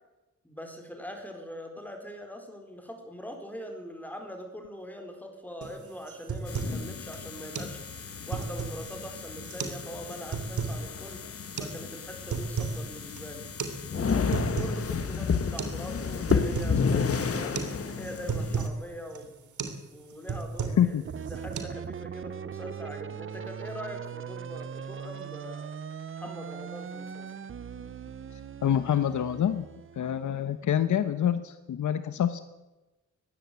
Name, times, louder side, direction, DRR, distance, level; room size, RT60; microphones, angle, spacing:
voice 1, 0.4-7.8 8.3-11.2 11.6-13.4 13.9-19.5 19.9-25.8 26.2-27.3, equal, 5° left, 4 dB, 4.3 m, -42 dB
sound 1, 5.6-5.8 6.1-6.8 7.1-7.2 7.5-7.7 8.1-8.9 9.5-9.8 10.1-10.8 11.6-11.7 12.1-12.8 13.1-13.2 13.6-13.8 14.1-14.8 15.1-15.2 15.6-15.8 16.1-16.8 17.1-17.3 17.6-17.7 18.0-18.8 19.1-19.3 19.6-19.8 20.1-20.9 21.2-21.6, right 5 dB, 80° right, 3.0 m, -33 dB
sound 2, 6.5-18.7, left 6 dB, 50° left, 1.7 m, -32 dB
sound 3, 21.0-30.6, right 7 dB, 45° right, 0.8 m, -40 dB
voice 2, 28.3-29.6 30.0-32.4, left 9 dB, 80° left, 11 dB, 1.1 m, -26 dB
20.0 x 16.0 x 8.3 m, 1.1 s
wide cardioid pair, 140°, 30 cm